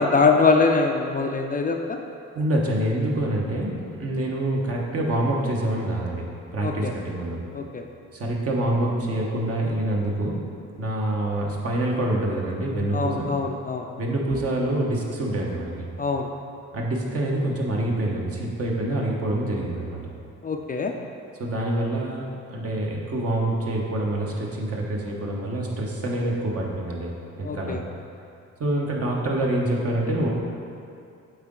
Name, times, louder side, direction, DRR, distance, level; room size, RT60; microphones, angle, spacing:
voice 1, 0.0-2.0 6.6-6.9 7.5-7.8 12.9-13.8 16.0-16.3 20.4-20.9 27.4-27.8, left 4 dB, 30° left, 3 dB, 0.4 m, -23 dB
voice 2, 2.3-6.3 6.5-7.4 8.1-10.4 10.8-13.3 14.0-15.9 16.7-20.0 21.4-27.1 27.4-27.8 28.6-30.3, right 1 dB, 50° right, -2 dB, 1.2 m, -26 dB
7.9 x 4.0 x 3.7 m, 2.5 s
cardioid pair, 90°, 30 cm